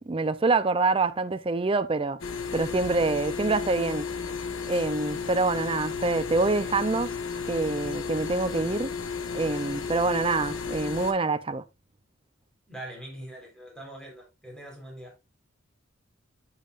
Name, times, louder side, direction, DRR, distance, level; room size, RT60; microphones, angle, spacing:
voice 1, 0.0-2.2 2.5-4.1 4.7-7.1 7.5-8.9 9.3-11.6, right 3 dB, 25° right, 0.5 m, -26 dB
sound 1, 2.2-11.1, left 5 dB, 90° left, 1.2 m, -33 dB
voice 2, 12.7-15.2, right 1 dB, 5° left, 3.9 m, -42 dB
8.9 x 7.4 x 2.5 m
head